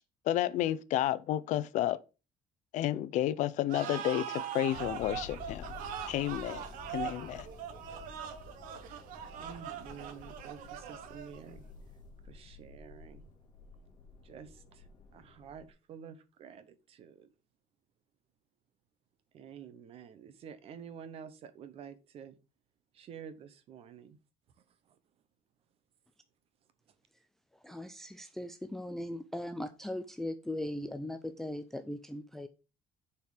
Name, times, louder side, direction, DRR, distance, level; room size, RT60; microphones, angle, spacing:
voice 1, 0.3-2.0 2.7-5.7 6.1-6.6 6.9-7.5, left 13 dB, 60° left, 0.6 m, -31 dB
sound 1, 3.7-11.5, right 9 dB, 90° right, 1.2 m, -41 dB
sound 2, 4.7-15.7, left 4 dB, 35° left, 2.4 m, -51 dB
voice 2, 9.4-11.6 12.2-13.3 14.2-17.3 19.3-22.4 22.9-24.2 24.9-25.0, right 7 dB, 45° right, 1.0 m, -49 dB
voice 3, 27.6-32.5, left 1 dB, 5° left, 0.4 m, -39 dB
6.9 x 4.5 x 6.5 m
cardioid pair, 180°, 14 cm